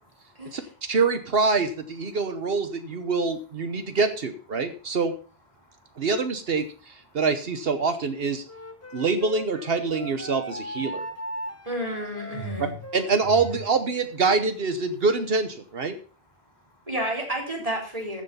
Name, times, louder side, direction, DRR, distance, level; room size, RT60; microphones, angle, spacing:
voice 1, 0.3-1.0 2.8-2.9 3.7-4.0 4.6-4.7 5.6-6.1 6.9-7.2 8.4-9.1 10.9-11.7 12.3-12.8 13.2-13.6 15.9-16.9, right 4 dB, 45° left, 1 dB, 3.9 m, -45 dB
voice 2, 0.9-5.1 6.0-8.4 8.9-11.1 12.6-15.9, right 4 dB, 70° right, 9 dB, 1.2 m, -25 dB
Wind instrument woodwind instrument, 8.5-13.8, equal, 15° left, 1.0 m, -38 dB
voice 3, 11.6-12.7 16.9-18.2, right 1 dB, 35° right, -1 dB, 4.2 m, -30 dB
15.0 x 6.7 x 5.4 m, 0.40 s
omnidirectional pair, 1.0 m